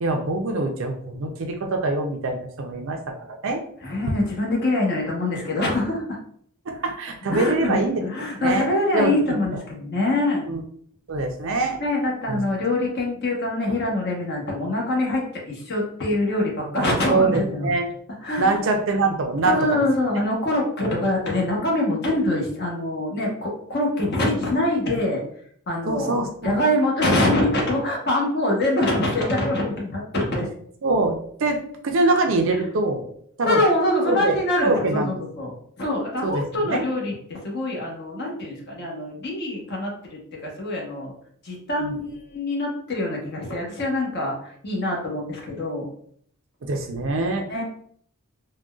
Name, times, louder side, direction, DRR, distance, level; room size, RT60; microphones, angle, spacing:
voice 1, 0.0-3.6 6.7-8.0 8.4-8.7 8.9-9.1 10.5-10.6 11.1-11.8 12.3-12.4 16.8-17.9 18.4-19.8 20.1-20.2 25.9-26.6 30.8-33.1 33.4-33.6 34.1-35.1 36.2-36.9 41.8-41.9 46.6-47.5, right 2 dB, 60° right, 4 dB, 0.5 m, -24 dB
voice 2, 3.8-6.2 7.3-10.5 11.8-17.7 18.2-18.6 19.4-25.2 25.7-26.2 26.4-30.5 32.5-32.6 33.4-41.1 41.4-45.9 47.5-47.6, left 1 dB, 50° left, -2 dB, 1.0 m, -24 dB
3.7 x 2.2 x 2.3 m, 0.62 s
head